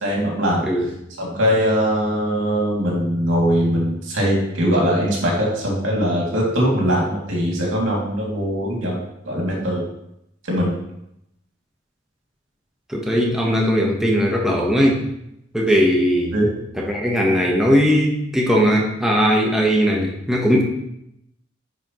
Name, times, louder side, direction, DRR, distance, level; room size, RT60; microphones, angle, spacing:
voice 1, 0.0-0.6 1.2-9.0 9.2-9.8 10.5-10.7 16.3-16.5, equal, 85° right, -3 dB, 2.5 m, -21 dB
voice 2, 12.9-15.0 15.5-16.3 16.8-20.6, equal, 5° right, -2 dB, 1.1 m, -18 dB
9.9 x 5.1 x 3.1 m, 0.81 s
head